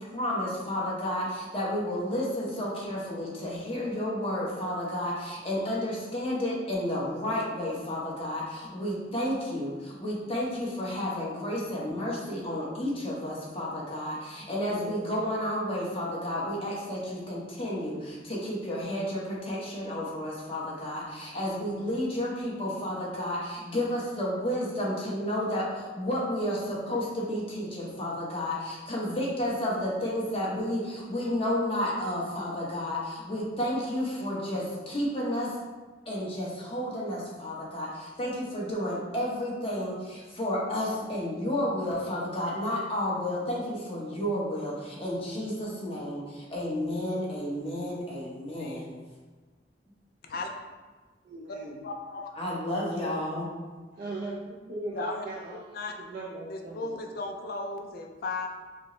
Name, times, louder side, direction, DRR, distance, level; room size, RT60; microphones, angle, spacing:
voice 1, 0.1-28.6 28.9-35.5 36.1-48.9 52.4-53.5, left 1 dB, 30° left, -5 dB, 0.9 m, -31 dB
voice 2, 51.2-51.9 54.0-57.0, right 2 dB, 50° right, -4 dB, 0.4 m, -39 dB
voice 3, 51.8-52.3 54.9-55.2 55.7-55.9 56.5-58.5, left 3 dB, 55° left, 3 dB, 0.4 m, -35 dB
5.1 x 2.1 x 3.0 m, 1.3 s
head